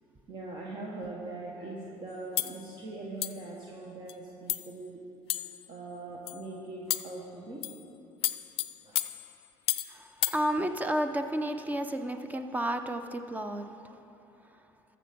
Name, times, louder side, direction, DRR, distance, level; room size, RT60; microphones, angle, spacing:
voice 1, 0.3-5.0 5.3-7.6 8.8-9.0, right 2 dB, 45° right, -3 dB, 1.4 m, -41 dB
sound 1, 2.4-2.6 3.2-3.5 4.1-4.2 4.5-4.7 5.3-5.7 6.3-6.4 6.9-7.2 7.6-7.8 8.2-9.9 10.2-10.4, left 14 dB, 60° left, 0.4 m, -32 dB
voice 2, 9.9-14.0 14.5-14.6, right 1 dB, 15° right, 8 dB, 0.6 m, -32 dB
13.5 x 6.9 x 5.2 m, 2.9 s
supercardioid pair, 95°, 11 cm